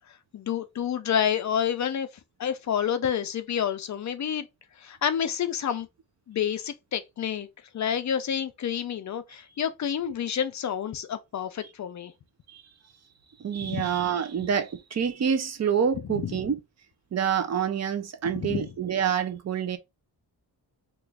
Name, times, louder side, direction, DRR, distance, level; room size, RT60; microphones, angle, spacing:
voice 1, 0.3-2.1 2.4-4.5 4.8-5.9 6.3-7.5 7.7-12.1 13.6-13.9 16.0-16.3 18.3-18.7, left 8 dB, 45° left, 0.4 m, -29 dB
voice 2, 13.4-16.6 17.1-19.8, right 7 dB, 40° right, 0.4 m, -27 dB
3.0 x 2.4 x 3.3 m
wide cardioid pair, 175°, 40 cm